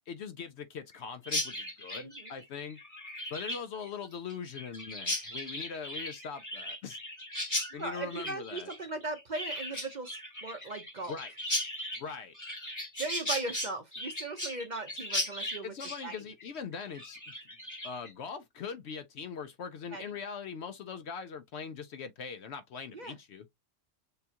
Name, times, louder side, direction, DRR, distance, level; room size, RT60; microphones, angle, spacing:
voice 1, 0.0-2.8 3.3-7.0 7.7-8.7 11.1-11.3 12.0-12.3 15.6-17.2 17.8-23.5, left 6 dB, 65° left, 0.8 m, -41 dB
Chirp tweet, 1.2-18.1, left 1 dB, 15° left, 1.1 m, -37 dB
voice 2, 7.8-11.1 13.0-15.7 16.0-16.1 19.9-20.0 22.9-23.2, right 3 dB, 40° right, 0.7 m, -38 dB
6.8 x 2.3 x 2.8 m
omnidirectional pair, 1.4 m